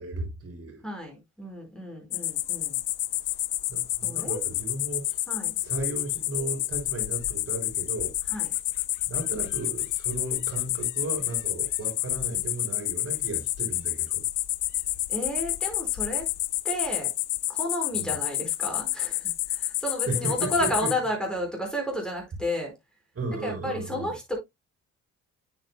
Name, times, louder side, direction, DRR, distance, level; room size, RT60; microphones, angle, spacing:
voice 1, 0.0-0.8 3.7-5.2 5.6-8.1 9.1-14.2 17.9-18.1 20.1-20.7 23.2-24.1, right 3 dB, 45° right, 4.0 m, -35 dB
voice 2, 0.8-2.8 4.0-4.4 5.3-5.6 8.3-8.5 15.1-16.3 16.6-17.1 17.5-22.7 23.4-24.4, equal, 5° left, 4.9 m, -32 dB
sound 1, 2.1-20.9, left 17 dB, 80° left, 0.5 m, -29 dB
9.3 x 7.7 x 2.2 m
cardioid pair, 90°, 30 cm